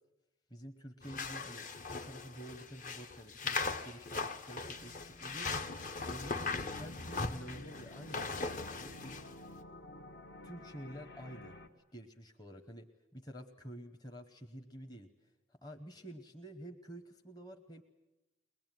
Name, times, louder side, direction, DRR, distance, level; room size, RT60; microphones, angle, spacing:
voice 1, 0.5-5.5 6.0-9.2 10.4-11.6 11.9-17.8, equal, 20° left, 4 dB, 1.1 m, -50 dB
sound 1, 1.0-9.3, left 3 dB, 45° left, 1.0 m, -39 dB
sound 2, 4.8-11.7, left 1 dB, 60° left, 1.6 m, -52 dB
22.5 x 21.0 x 9.2 m, 0.98 s
head